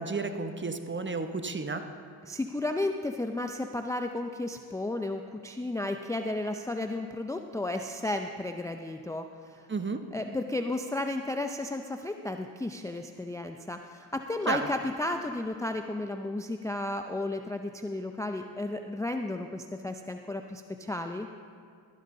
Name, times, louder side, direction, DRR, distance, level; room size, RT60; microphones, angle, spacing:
voice 1, 0.0-1.8 9.7-10.0 14.5-14.6, right 4 dB, 25° right, 7 dB, 1.0 m, -32 dB
voice 2, 2.3-9.6 10.1-21.3, left 2 dB, 5° left, 5 dB, 0.5 m, -33 dB
13.0 x 11.0 x 3.8 m, 2.2 s
supercardioid pair, 50°, 45 cm